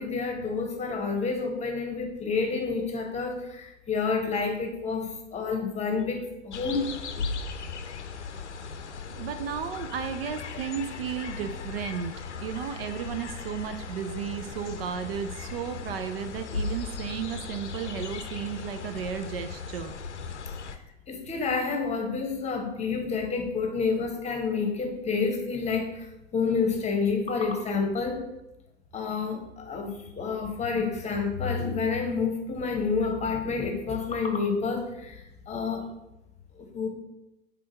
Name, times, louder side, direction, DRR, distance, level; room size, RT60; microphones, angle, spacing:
voice 1, 0.0-6.8 21.1-26.1 26.3-28.2 28.9-35.1 35.5-35.8 36.6-36.9, left 4 dB, 20° left, 3 dB, 1.0 m, -29 dB
sound 1, 6.5-20.8, left 5 dB, 75° left, 0.6 m, -37 dB
voice 2, 9.2-19.9, right 8 dB, 55° right, 9 dB, 0.5 m, -34 dB
5.0 x 3.6 x 5.5 m, 0.90 s
figure-of-eight pair, 85°, 35 cm